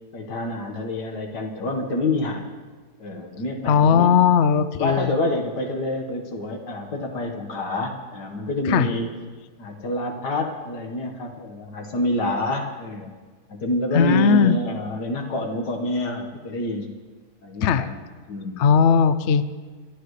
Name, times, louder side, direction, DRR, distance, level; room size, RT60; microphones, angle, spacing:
voice 1, 0.1-2.5 3.0-4.1 4.8-9.2 9.6-13.1 13.5-16.9 17.4-17.9 18.3-18.7, left 1 dB, 80° left, 2 dB, 2.1 m, -27 dB
voice 2, 3.7-5.1 8.7-8.9 13.9-14.6 17.6-17.9 18.6-19.5, left 7 dB, 65° left, 12 dB, 0.7 m, -18 dB
26.5 x 11.5 x 3.2 m, 1.4 s
omnidirectional pair, 1.8 m